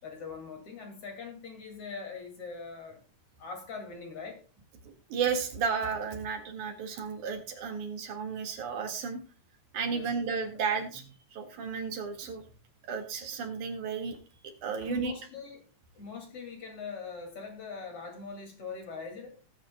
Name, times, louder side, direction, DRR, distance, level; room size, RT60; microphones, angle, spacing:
voice 1, 0.0-3.0 3.4-4.4 9.9-10.1 14.8-15.6 15.9-19.4, left 5 dB, 50° left, 3 dB, 3.3 m, -42 dB
voice 2, 4.8-9.2 9.7-11.0 11.3-12.4 12.9-14.2 14.6-15.1, right 5 dB, 80° right, 4 dB, 3.3 m, -33 dB
18.5 x 8.4 x 2.2 m, 0.36 s
omnidirectional pair, 3.5 m